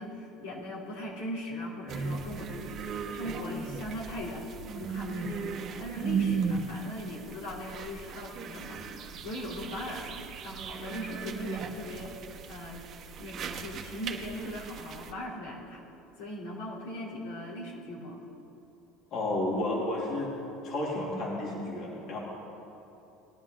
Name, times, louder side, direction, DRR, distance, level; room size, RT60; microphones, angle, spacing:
voice 1, 0.0-5.5 5.8-10.2 10.4-12.8 13.2-15.8 16.2-18.2, left 1 dB, 80° left, -4 dB, 3.3 m, -39 dB
sound 1, 1.9-15.1, right 6 dB, 45° right, 1.3 m, -37 dB
voice 2, 19.1-20.3 20.6-22.2, left 1 dB, 50° left, -3 dB, 2.8 m, -31 dB
20.0 x 11.0 x 3.8 m, 3.0 s
supercardioid pair, 110°, 0 cm